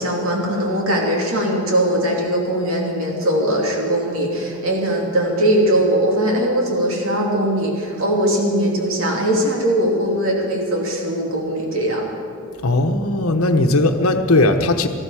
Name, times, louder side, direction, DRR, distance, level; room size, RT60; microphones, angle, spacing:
voice 1, 0.0-12.1, right 1 dB, 70° right, -1 dB, 3.0 m, -20 dB
voice 2, 12.6-14.9, left 2 dB, 75° left, 7 dB, 1.1 m, -17 dB
18.5 x 14.0 x 4.9 m, 2.4 s
head